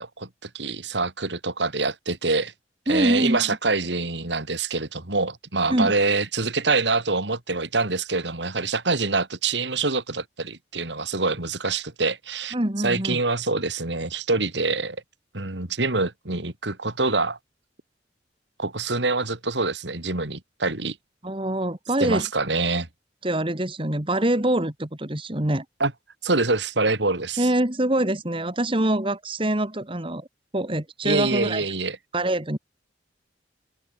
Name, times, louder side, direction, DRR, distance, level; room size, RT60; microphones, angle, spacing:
voice 1, 0.0-2.5 2.9-12.5 12.8-15.0 15.3-17.4 18.6-21.0 22.0-22.9 25.8-25.9 26.2-27.5 31.0-32.0, right 3 dB, 75° right, 2.9 m, -25 dB
voice 2, 2.9-3.6 5.7-5.9 12.5-13.2 21.2-22.3 23.2-25.6 27.4-30.3 30.5-31.6 32.1-32.6, right 1 dB, 30° right, 2.2 m, -24 dB
open air
head